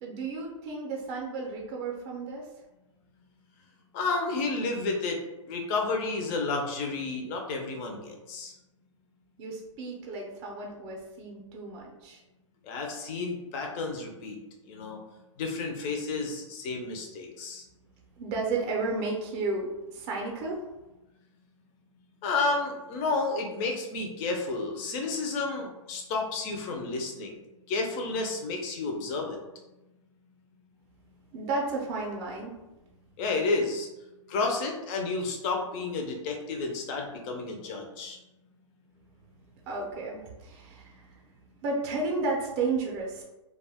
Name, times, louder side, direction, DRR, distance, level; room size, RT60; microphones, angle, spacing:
voice 1, 0.0-2.5 9.4-12.2 18.2-20.7 31.3-32.5 39.6-41.2 41.6-43.2, right 3 dB, 30° right, -1 dB, 0.5 m, -33 dB
voice 2, 3.9-5.2 5.5-8.6 12.6-14.4 14.6-15.0 15.4-17.6 22.2-27.4 27.7-29.4 33.2-33.9 34.3-38.2, left 3 dB, 25° left, 2 dB, 0.4 m, -31 dB
2.2 x 2.2 x 3.4 m, 1.0 s
hypercardioid pair, 150°, 17 cm